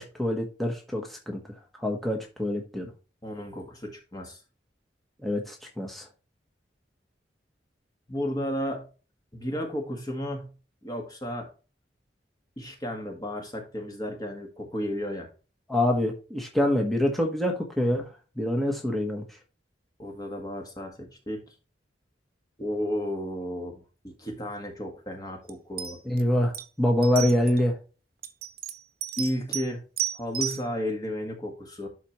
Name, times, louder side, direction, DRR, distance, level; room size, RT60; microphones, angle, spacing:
voice 1, 0.0-1.4 1.8-2.9 5.2-6.0 15.7-18.1 18.4-19.2 26.0-26.5 26.8-27.7, left 1 dB, ahead, 0 dB, 1.2 m, -25 dB
voice 2, 3.2-4.4 8.1-8.9 9.3-10.5 10.8-11.5 12.6-15.3 20.0-21.6 22.6-23.8 24.2-26.0 29.2-29.8 30.1-31.9, equal, 20° left, 2 dB, 1.6 m, -33 dB
sound 1, 25.5-25.6 25.8-26.2 26.5-26.6 27.0-27.6 28.2-29.7 30.0-30.6, right 11 dB, 55° right, 1.0 m, -32 dB
11.5 x 4.3 x 3.1 m, 0.33 s
head